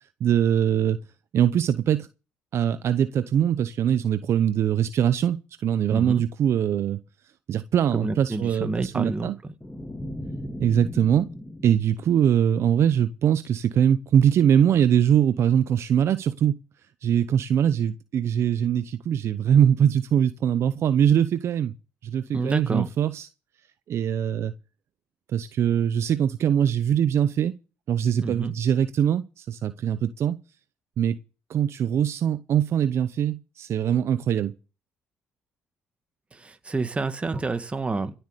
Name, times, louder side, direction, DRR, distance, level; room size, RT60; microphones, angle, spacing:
voice 1, 0.2-1.0 1.3-2.1 2.5-5.4 5.6-7.0 7.5-9.3 10.6-11.3 11.6-16.6 17.0-21.7 22.0-23.3 23.9-24.5 25.3-27.5 27.9-30.4 31.0-31.2 31.5-34.5, right 9 dB, 60° right, 0.7 m, -22 dB
voice 2, 5.9-6.2 7.9-9.3 22.3-22.9 28.2-28.5 36.3-38.1, right 3 dB, 25° right, 2.0 m, -28 dB
sound 1, 9.6-12.9, left 1 dB, 10° left, 1.8 m, -38 dB
16.5 x 7.9 x 6.7 m
supercardioid pair, 80°, 5 cm